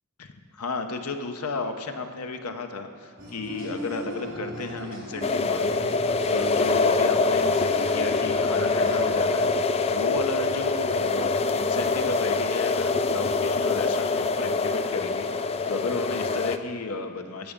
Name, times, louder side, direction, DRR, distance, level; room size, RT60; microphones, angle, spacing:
voice 1, 0.2-17.5, left 3 dB, 80° left, 6 dB, 0.8 m, -33 dB
sound 1, 3.2-9.1, equal, 65° right, 3.5 m, -38 dB
sound 2, 5.2-16.6, left 3 dB, 25° left, 0.3 m, -24 dB
14.5 x 7.3 x 5.2 m, 2.1 s
head